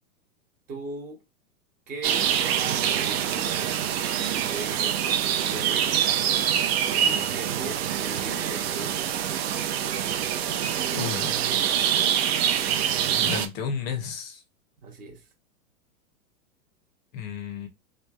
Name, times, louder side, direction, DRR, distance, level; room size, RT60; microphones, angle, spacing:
voice 1, 0.7-1.2 1.9-3.8 4.2-6.3 6.8-9.2 10.1-11.9 14.8-15.2, right 3 dB, 20° right, 0.7 m, -39 dB
sound 1, 2.0-13.5, right 9 dB, 50° right, 0.5 m, -25 dB
voice 2, 10.9-11.3 13.2-14.4 17.1-17.7, left 6 dB, 30° left, 0.6 m, -32 dB
3.2 x 2.1 x 2.2 m
hypercardioid pair, 140°, 43 cm